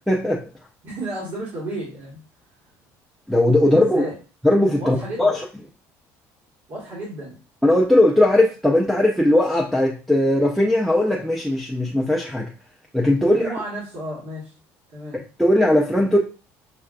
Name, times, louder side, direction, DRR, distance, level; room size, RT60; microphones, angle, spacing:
voice 1, 0.1-0.4 3.3-4.1 4.4-5.4 7.6-12.5 12.9-13.5 15.4-16.2, left 1 dB, ahead, 0.4 m, -18 dB
voice 2, 0.8-2.2 3.6-4.1 4.8-5.4 6.7-7.4 13.2-14.5 14.9-15.2, right 1 dB, 50° right, 1.5 m, -32 dB
5.7 x 2.2 x 2.4 m
cardioid pair, 130°, 7 cm